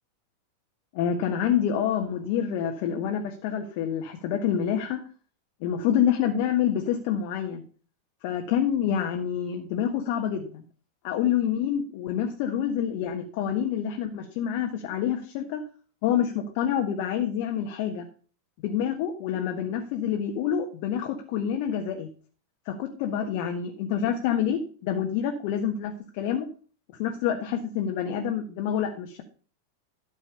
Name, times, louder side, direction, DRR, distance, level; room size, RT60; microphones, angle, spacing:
voice 1, 0.9-5.1 5.6-7.6 8.2-10.6 11.0-15.6 16.0-18.1 18.6-22.1 22.6-26.5 27.0-29.2, left 9 dB, 45° left, 4 dB, 1.5 m, -27 dB
12.5 x 6.4 x 6.8 m, 0.41 s
figure-of-eight pair, 90°, 0 cm